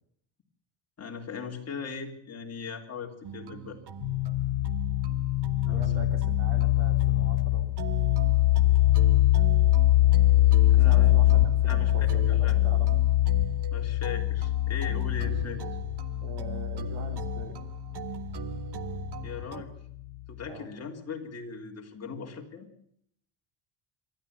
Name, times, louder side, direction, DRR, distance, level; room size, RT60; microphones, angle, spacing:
voice 1, 1.0-3.8 5.7-6.0 10.6-11.1 11.6-12.6 13.7-15.6 19.2-19.7 20.3-22.7, left 5 dB, 30° left, 1 dB, 3.4 m, -39 dB
sound 1, 3.2-19.6, right 8 dB, 50° right, 1.3 m, -41 dB
sound 2, 4.0-19.4, left 15 dB, 65° left, 0.8 m, -24 dB
voice 2, 5.7-7.9 10.7-12.9 16.2-17.6 20.5-20.7, right 4 dB, 75° right, 7 dB, 3.8 m, -42 dB
26.5 x 12.5 x 8.3 m, 0.69 s
cardioid pair, 140°, 50 cm